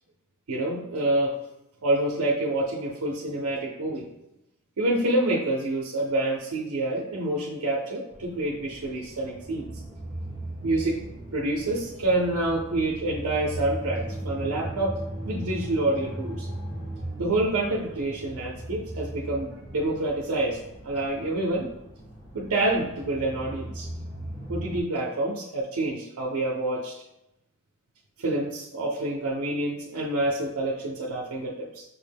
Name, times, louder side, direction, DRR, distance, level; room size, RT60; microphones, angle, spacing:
voice 1, 0.5-1.4 1.8-4.1 4.8-9.7 10.6-11.0 11.3-15.0 15.2-16.5 17.2-20.6 20.8-21.7 22.3-23.9 24.5-27.0 28.2-31.8, right 2 dB, 75° right, -2 dB, 0.6 m, -27 dB
sound 1, 8.1-24.8, right 1 dB, 15° left, 0.9 m, -38 dB
5.9 x 2.1 x 3.4 m, 0.89 s
head